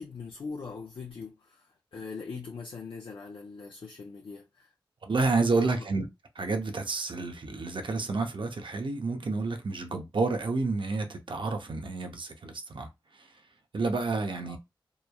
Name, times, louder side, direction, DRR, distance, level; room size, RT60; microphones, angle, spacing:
voice 1, 0.0-4.7 5.6-5.9 14.4-14.6, left 4 dB, 70° left, 0.4 m, -41 dB
voice 2, 5.0-6.0 6.3-13.3 13.7-14.6, right 3 dB, 65° right, 0.7 m, -30 dB
3.0 x 2.2 x 2.2 m
cardioid pair, 40°, 9 cm